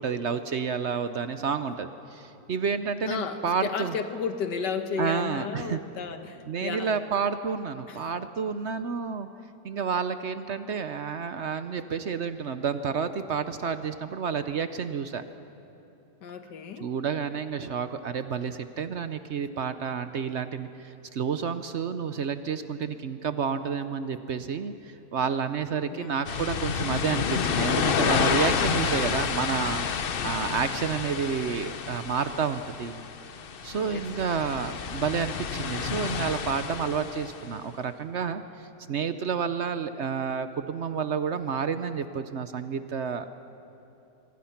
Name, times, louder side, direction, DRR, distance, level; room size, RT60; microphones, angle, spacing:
voice 1, 0.0-3.9 5.0-5.8 6.5-9.3 9.6-15.2 16.8-33.0 33.6-43.3, right 6 dB, 60° right, 10 dB, 0.7 m, -30 dB
voice 2, 3.1-7.1 7.9-8.0 16.2-16.9 25.9-26.2 30.2-30.7 33.8-34.1, left 6 dB, 75° left, 8 dB, 1.8 m, -33 dB
sound 1, 26.2-37.4, left 6 dB, 55° left, 0.6 m, -29 dB
25.0 x 24.0 x 5.9 m, 2.9 s
omnidirectional pair, 1.9 m